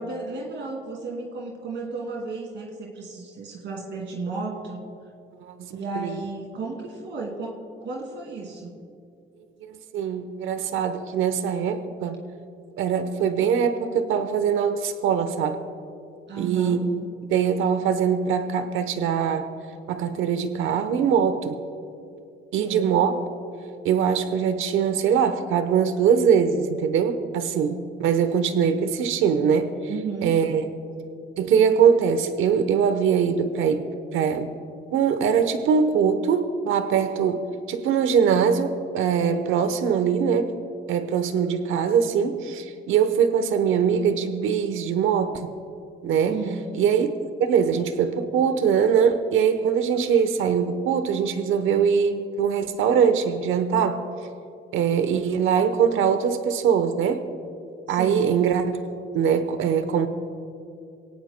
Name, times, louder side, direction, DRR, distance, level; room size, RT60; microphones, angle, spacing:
voice 1, 0.0-4.8 5.7-8.7 16.3-16.8 22.6-22.9 29.9-30.4 46.3-46.7 57.9-58.2, right 4 dB, 65° right, 0 dB, 2.5 m, -33 dB
voice 2, 9.7-12.2 12.8-15.6 16.4-19.5 19.9-21.6 22.5-23.3 23.8-29.7 30.2-30.6 31.4-33.8 34.1-34.5 34.9-37.4 37.7-40.5 40.9-45.5 46.0-46.4 46.7-47.2 47.5-54.0 54.7-57.3 57.9-58.8 59.1-60.1, right 7 dB, 85° right, 9 dB, 1.0 m, -22 dB
24.0 x 17.5 x 2.2 m, 2.5 s
cardioid pair, 90°, 20 cm